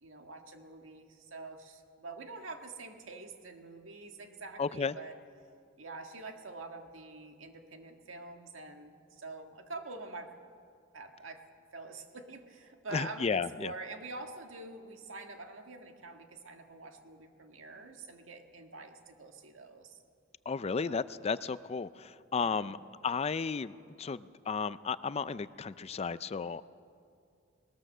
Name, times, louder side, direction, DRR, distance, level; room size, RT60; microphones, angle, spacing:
voice 1, 0.0-5.2 5.8-10.4 10.9-20.0 20.8-21.0 22.3-22.7, right 3 dB, 85° right, 4 dB, 1.7 m, -46 dB
voice 2, 4.6-4.9 12.9-13.7 20.5-22.8 23.0-23.7 24.0-26.6, left 5 dB, 30° left, 15 dB, 0.4 m, -33 dB
20.0 x 19.5 x 6.7 m, 2.3 s
head